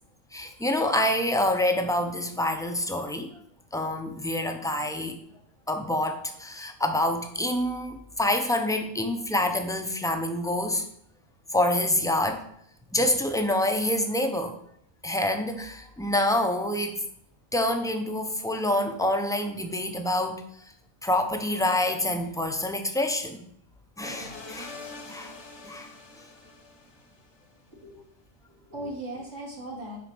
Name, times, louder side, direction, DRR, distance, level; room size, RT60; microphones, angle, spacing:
voice 1, 0.3-3.3 3.7-5.2 5.7-10.8 11.5-12.4 12.9-14.5 15.0-17.0 17.5-20.4 21.0-23.5 24.0-24.8 25.1-25.3 25.6-25.9, left 1 dB, 5° left, 5 dB, 0.7 m, -27 dB
sound 1, 24.0-27.5, left 3 dB, 60° left, 1.7 m, -44 dB
voice 2, 27.7-28.0 28.5-30.0, right 1 dB, 70° right, -3 dB, 2.6 m, -38 dB
9.5 x 4.2 x 6.1 m, 0.70 s
omnidirectional pair, 1.3 m